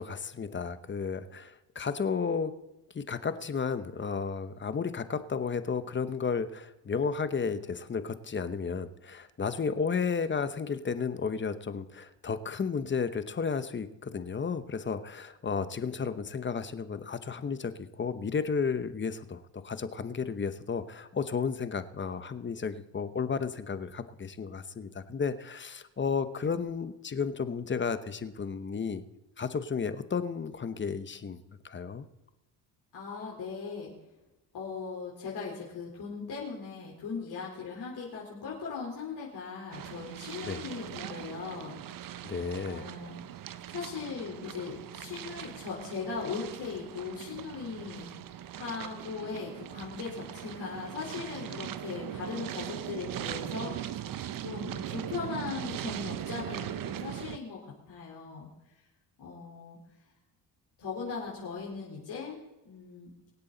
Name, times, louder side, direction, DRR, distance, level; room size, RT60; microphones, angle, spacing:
voice 1, 0.0-2.5 2.9-29.0 29.4-31.4 31.6-32.1 40.4-40.6 42.2-42.9, left 5 dB, 25° left, 12 dB, 0.9 m, -33 dB
voice 2, 32.9-33.9 34.5-41.8 42.7-43.2 43.7-48.1 48.5-53.8 54.4-58.5 59.2-59.8 60.8-62.4 62.6-63.1, left 5 dB, 70° left, -4 dB, 4.1 m, -39 dB
sound 1, 39.7-57.4, right 11 dB, 55° right, 0.8 m, -40 dB
24.0 x 8.2 x 4.0 m, 1.0 s
cardioid pair, 110°, 42 cm